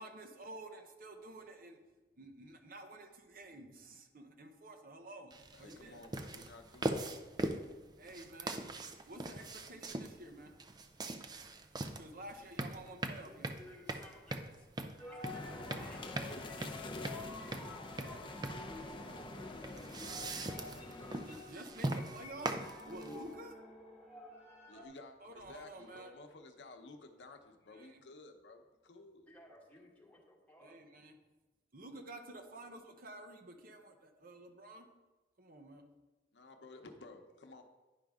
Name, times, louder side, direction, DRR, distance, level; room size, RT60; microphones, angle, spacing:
voice 1, 0.0-1.8 2.2-5.3 5.6-6.0 8.0-8.6 9.1-10.5 12.0-13.5 20.9-23.6 25.2-26.1 27.7-28.0 30.6-31.1 31.7-34.9 35.4-35.8, right 1 dB, 55° right, 5 dB, 0.8 m, -51 dB
sound 1, 5.3-23.3, right 2 dB, 25° right, 0.4 m, -41 dB
voice 2, 5.5-7.2 18.7-19.2 19.5-21.3 24.7-29.3 29.8-29.9 36.3-37.6, left 2 dB, 85° left, 5 dB, 0.8 m, -55 dB
voice 3, 12.5-14.6 15.1-16.6 25.6-25.9 29.3-30.8, left 1 dB, 10° left, -3 dB, 1.6 m, -60 dB
sound 2, 15.0-24.9, left 2 dB, 10° right, 1.6 m, -50 dB
sound 3, 15.2-21.4, left 2 dB, 30° left, 0.6 m, -47 dB
10.5 x 5.1 x 3.6 m, 1.1 s
head